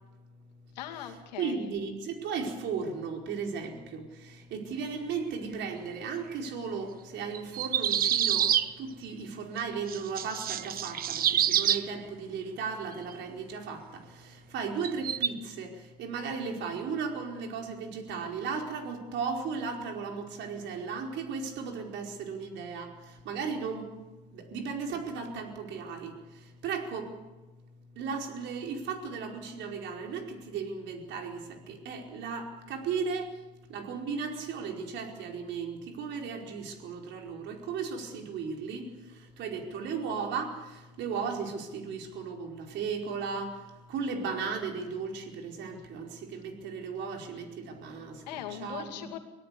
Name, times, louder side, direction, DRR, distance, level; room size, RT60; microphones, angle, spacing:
voice 1, 0.7-1.7 47.3-47.4 48.3-49.2, left 10 dB, 85° left, 5 dB, 2.5 m, -40 dB
voice 2, 1.4-23.9 24.3-27.2 27.9-49.1, right 5 dB, 60° right, 2 dB, 4.8 m, -36 dB
sound 1, 7.3-8.7 9.6-9.7 9.9-11.9 14.8-15.3, right 10 dB, 45° right, 1.1 m, -27 dB
24.5 x 18.0 x 7.0 m, 1.2 s
hypercardioid pair, 75°, 21 cm